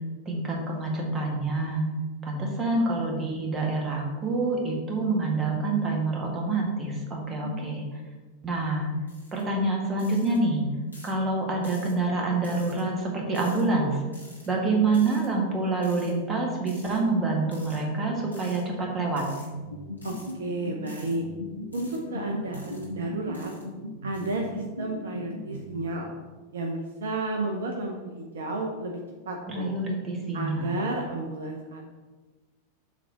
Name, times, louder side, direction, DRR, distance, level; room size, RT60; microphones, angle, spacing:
voice 1, 0.3-1.8 2.2-7.8 8.4-8.9 9.3-10.7 11.0-14.0 14.5-19.2 29.5-30.8, right 3 dB, 25° right, -1 dB, 1.7 m, -27 dB
sound 1, 9.1-9.4 10.0-10.4 10.9-11.2 11.6-11.9 12.4-12.8 13.3-13.6 14.1-14.5 14.9-15.3 15.8-16.1 16.7-17.0 17.5-17.8 18.3-18.6 19.1-19.5 20.0-20.3 20.9-21.1 21.7-22.0 22.5-22.9 23.3-23.6 24.1-24.4, left 1 dB, 85° left, 1.8 m, -50 dB
sound 2, 19.5-26.2, left 1 dB, 90° right, 0.9 m, -38 dB
voice 2, 20.0-21.2 21.7-23.5 24.0-26.1 26.5-29.0 29.3-29.8 30.3-31.9, right 2 dB, 65° right, 1 dB, 0.8 m, -32 dB
7.4 x 3.4 x 5.9 m, 1.3 s
figure-of-eight pair, 90°, 0 cm